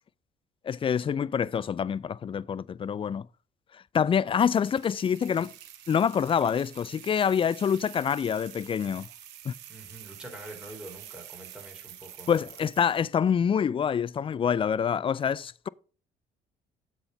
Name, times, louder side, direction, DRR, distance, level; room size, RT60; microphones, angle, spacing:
voice 1, 0.6-3.3 3.7-5.5 5.9-9.1 9.4-9.5 12.3-15.7, left 7 dB, 30° left, 0.3 m, -26 dB
sound 1, 4.4-13.1, right 11 dB, 75° right, 1.0 m, -48 dB
voice 2, 9.7-12.3, right 1 dB, 5° right, 3.7 m, -45 dB
7.7 x 4.4 x 5.2 m
hypercardioid pair, 55°, 18 cm